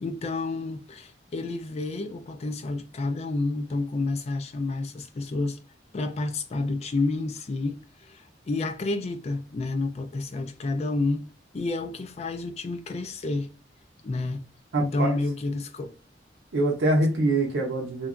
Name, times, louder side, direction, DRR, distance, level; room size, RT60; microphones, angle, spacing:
voice 1, 0.0-5.6 5.9-11.3 11.5-13.5 14.0-14.4 14.8-16.0, left 3 dB, 35° left, 0.4 m, -30 dB
voice 2, 14.7-15.1 16.5-18.1, right 2 dB, 90° right, 0.6 m, -24 dB
2.8 x 2.2 x 2.4 m
head